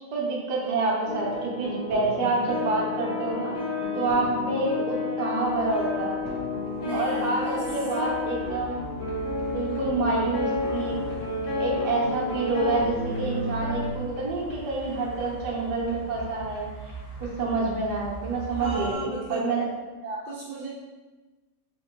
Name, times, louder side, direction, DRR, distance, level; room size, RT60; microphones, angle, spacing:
voice 1, 0.1-3.6 4.0-6.2 6.9-8.9 9.5-11.0 11.6-16.7 17.2-19.6 20.0-20.2, right 3 dB, 60° right, -3 dB, 1.5 m, -27 dB
sound 1, 1.1-13.9, left 2 dB, 50° left, 1.7 m, -31 dB
voice 2, 3.9-4.6 6.8-7.6 9.7-10.3 18.6-19.5 20.2-20.7, right 2 dB, 80° right, -5 dB, 1.4 m, -36 dB
sound 2, 5.4-18.9, right 1 dB, 85° left, 1.6 m, -42 dB
3.8 x 3.6 x 3.7 m, 1.2 s
omnidirectional pair, 2.1 m